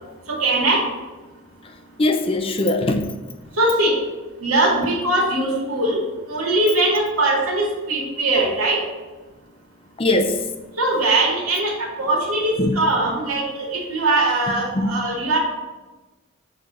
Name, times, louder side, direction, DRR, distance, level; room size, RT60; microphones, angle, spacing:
voice 1, 0.3-0.9 3.5-4.0 4.4-8.8 10.8-15.4, right 2 dB, 80° right, 2.2 m, -21 dB
voice 2, 2.0-3.2 10.0-10.5 12.6-12.8 14.7-15.0, left 1 dB, 25° left, 0.4 m, -21 dB
7.7 x 3.3 x 6.3 m
head